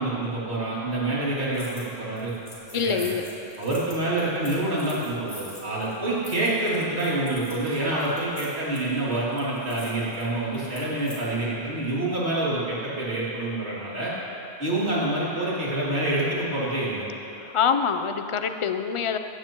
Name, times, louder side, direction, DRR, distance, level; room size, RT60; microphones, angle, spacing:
voice 1, 0.0-2.3 2.7-3.1 3.6-14.1 14.6-17.0, right 1 dB, 90° right, -8 dB, 3.1 m, -27 dB
sound 1, 1.5-1.9 2.2-11.2, left 1 dB, 80° left, 3.0 m, -46 dB
voice 2, 2.7-3.2 17.5-19.2, left 6 dB, 40° left, 8 dB, 0.5 m, -25 dB
16.0 x 15.0 x 3.0 m, 2.9 s
omnidirectional pair, 1.1 m